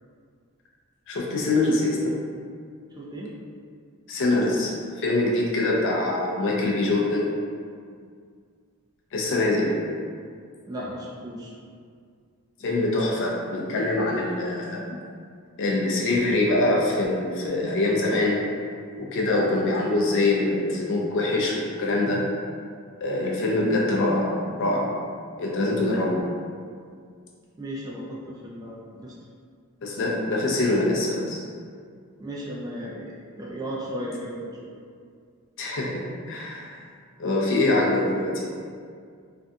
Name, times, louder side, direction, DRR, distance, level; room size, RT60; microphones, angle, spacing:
voice 1, 1.1-2.2 4.1-7.3 9.1-9.8 12.6-15.0 15.6-18.4 19.0-22.2 23.0-24.3 24.6-24.9 25.4-26.2 29.8-31.5 35.6-36.8 37.2-38.5, left 2 dB, 60° left, -3 dB, 0.5 m, -24 dB
voice 2, 3.0-3.3 10.7-11.5 27.6-29.1 32.2-34.5 37.7-37.8, equal, 20° right, -5 dB, 0.3 m, -35 dB
2.5 x 2.3 x 2.6 m, 2.1 s
head